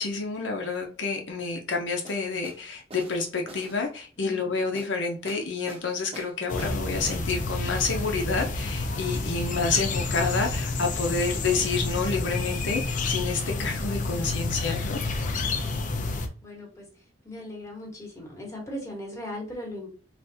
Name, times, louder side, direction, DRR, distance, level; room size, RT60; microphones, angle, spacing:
voice 1, 0.0-15.0, left 4 dB, 80° left, 0.6 m, -29 dB
sound 1, 2.0-2.6 2.9-3.8 4.7-4.9 5.3-5.9 6.1-6.8 7.1-7.2 7.6-7.7, right 1 dB, 30° right, 0.7 m, -44 dB
voice 2, 4.2-4.5 13.9-14.6 16.1-16.9 17.2-19.9, left 1 dB, 15° left, 1.0 m, -39 dB
sound 2, 6.5-16.3, left 3 dB, 45° left, 0.4 m, -29 dB
3.4 x 2.5 x 2.7 m
head